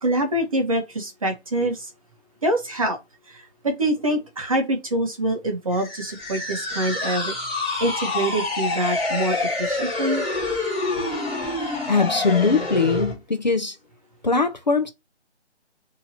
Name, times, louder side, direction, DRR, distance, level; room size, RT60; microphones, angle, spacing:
voice 1, 0.0-1.9 2.4-3.0 3.3-7.3 7.8-10.2, right 1 dB, 30° right, 0.8 m, -25 dB
sound 1, 5.7-13.1, left 2 dB, 10° left, 1.1 m, -27 dB
voice 2, 11.9-13.8 14.2-14.9, left 4 dB, 40° left, 0.5 m, -21 dB
2.8 x 2.7 x 4.1 m
figure-of-eight pair, 165°, 34 cm